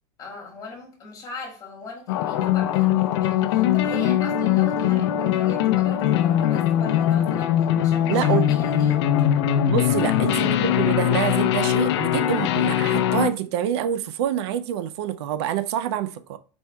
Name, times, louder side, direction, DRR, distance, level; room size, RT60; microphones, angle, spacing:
voice 1, 0.2-9.0 10.0-10.2, left 4 dB, 25° left, 1.6 m, -39 dB
sound 1, 2.1-13.3, left 11 dB, 70° left, 0.5 m, -21 dB
voice 2, 8.1-8.5 9.7-16.4, right 10 dB, 70° right, 0.4 m, -26 dB
4.5 x 4.3 x 2.2 m
supercardioid pair, 150°, 14 cm